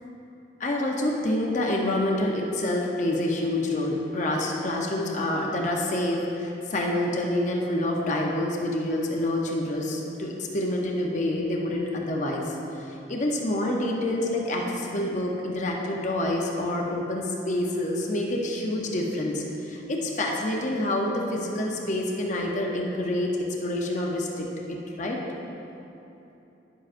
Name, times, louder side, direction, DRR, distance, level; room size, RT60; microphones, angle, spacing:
voice 1, 0.6-25.2, left 1 dB, 40° left, -1 dB, 0.7 m, -27 dB
9.9 x 7.4 x 2.5 m, 2.9 s
head